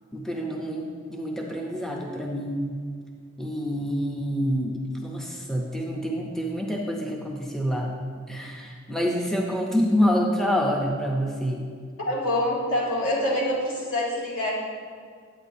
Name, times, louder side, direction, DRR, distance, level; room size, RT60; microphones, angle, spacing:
voice 1, 0.1-2.8 3.4-7.9 8.3-11.6, equal, ahead, 0 dB, 0.6 m, -27 dB
voice 2, 12.1-14.5, left 1 dB, 85° left, -5 dB, 2.4 m, -25 dB
9.8 x 8.7 x 2.7 m, 2.1 s
head